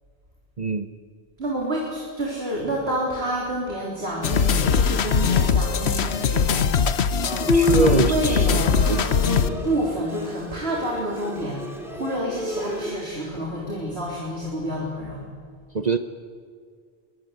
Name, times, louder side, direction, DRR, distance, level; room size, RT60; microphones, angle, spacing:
voice 1, 0.6-0.9 7.5-8.6 8.9-9.1 15.7-16.0, right 3 dB, 45° right, 9 dB, 1.0 m, -23 dB
voice 2, 1.4-15.2, right 1 dB, 75° right, -3 dB, 4.2 m, -29 dB
sound 1, 4.2-9.5, left 6 dB, 90° left, 1.3 m, -21 dB
Bowed string instrument, 7.5-12.9, left 1 dB, ahead, 3.8 m, -29 dB
23.0 x 22.0 x 9.4 m, 2.1 s
omnidirectional pair, 1.1 m